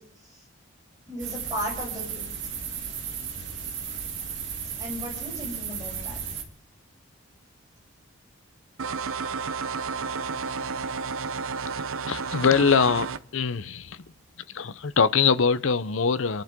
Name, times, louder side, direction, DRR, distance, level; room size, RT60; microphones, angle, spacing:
voice 1, 1.1-2.3 4.8-6.2, equal, 20° right, 8.0 m, -35 dB
sound 1, 1.2-6.4, right 6 dB, 60° right, 2.4 m, -34 dB
sound 2, 8.8-13.2, right 5 dB, 90° right, 0.7 m, -31 dB
voice 2, 12.1-14.0 14.5-16.4, left 5 dB, 75° left, 0.6 m, -23 dB
29.5 x 11.5 x 3.7 m
head